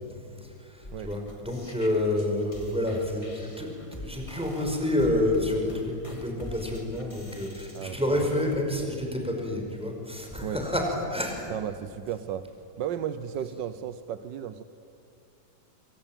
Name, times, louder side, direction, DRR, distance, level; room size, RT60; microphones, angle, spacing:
sound 1, 0.8-8.6, left 1 dB, 15° left, 2.5 m, -45 dB
voice 1, 0.8-3.7 4.0-11.3, left 1 dB, 5° right, 1 dB, 5.2 m, -28 dB
voice 2, 7.7-8.3 10.4-10.6 11.5-12.5 12.8-14.6, right 9 dB, 80° right, 12 dB, 1.5 m, -34 dB
25.5 x 25.5 x 9.0 m, 2.5 s
omnidirectional pair, 2.0 m